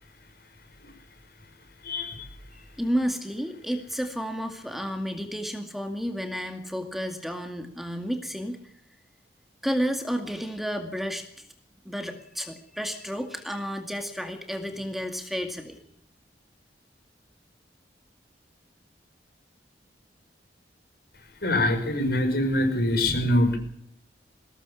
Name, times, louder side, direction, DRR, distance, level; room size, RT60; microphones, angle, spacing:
voice 1, 1.8-2.2 21.4-23.6, left 1 dB, 60° left, 7 dB, 5.4 m, -24 dB
voice 2, 2.5-8.7 9.6-11.5 11.9-15.8, equal, ahead, 5 dB, 2.2 m, -31 dB
21.5 x 18.5 x 7.1 m, 0.68 s
head